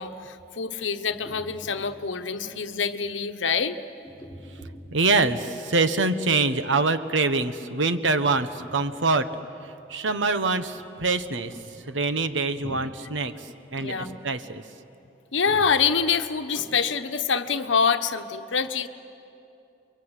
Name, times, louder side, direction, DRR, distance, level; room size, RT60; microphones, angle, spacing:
voice 1, 0.0-3.8 12.6-12.8 13.8-14.2 15.3-18.9, left 6 dB, 80° left, 9 dB, 1.1 m, -26 dB
sound 1, 1.1-2.9 4.0-5.8 8.1-9.6 10.1-10.7 11.3-12.1 12.5-14.5 15.5-17.1, equal, 10° left, 4.2 m, -47 dB
voice 2, 4.9-9.3 9.6-14.6, right 3 dB, 80° right, 10 dB, 1.1 m, -25 dB
29.0 x 23.0 x 8.2 m, 2.7 s
head